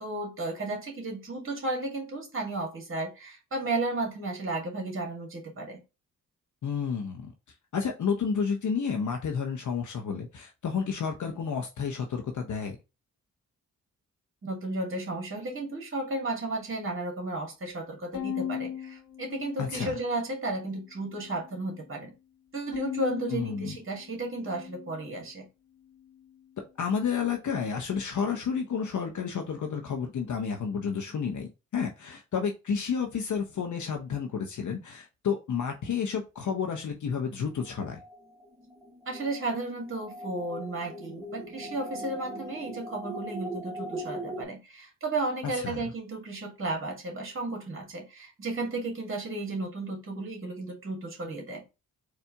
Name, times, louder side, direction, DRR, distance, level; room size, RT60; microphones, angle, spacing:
voice 1, 0.0-5.8 14.4-22.1 22.5-25.5 39.1-51.6, right 2 dB, 35° right, 1.9 m, -34 dB
voice 2, 6.6-7.3 7.7-12.8 19.6-19.9 23.3-23.7 26.8-38.0 45.5-45.8, left 6 dB, 50° left, 0.8 m, -31 dB
Bowed string instrument, 18.1-20.5 21.0-21.7 22.7-25.2, left 9 dB, 70° left, 1.2 m, -39 dB
sound 1, 37.6-44.4, right 1 dB, 10° right, 1.3 m, -40 dB
4.3 x 2.6 x 3.6 m
hypercardioid pair, 45°, 37 cm